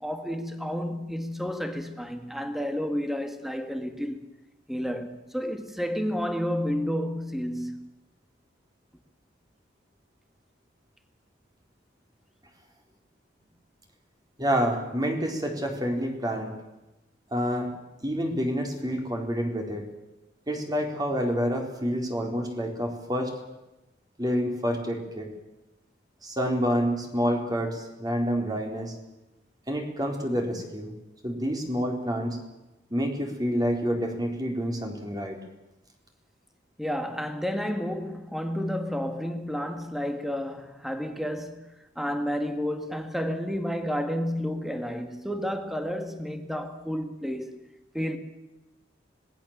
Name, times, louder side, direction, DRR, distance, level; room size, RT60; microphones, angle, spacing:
voice 1, 0.0-4.2 4.7-7.9 36.8-47.7 47.9-48.2, equal, ahead, 2.1 m, -31 dB
voice 2, 14.4-16.5 17.3-17.7 18.0-19.9 20.5-23.3 24.2-25.3 26.2-28.9 29.7-30.9 31.2-32.4 32.9-35.4, equal, 20° right, 4.1 m, -28 dB
26.0 x 20.0 x 7.5 m
head